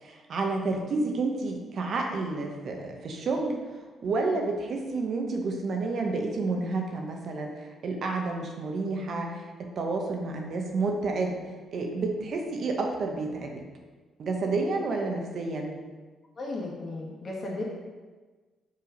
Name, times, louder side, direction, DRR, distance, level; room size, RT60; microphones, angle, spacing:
voice 1, 0.0-3.6 4.0-11.4 11.7-13.6 14.2-15.8, right 3 dB, 60° right, 2 dB, 1.1 m, -30 dB
voice 2, 16.4-17.6, left 2 dB, 45° left, -2 dB, 1.9 m, -35 dB
5.6 x 4.8 x 5.2 m, 1.3 s
cardioid pair, 90°, 0 cm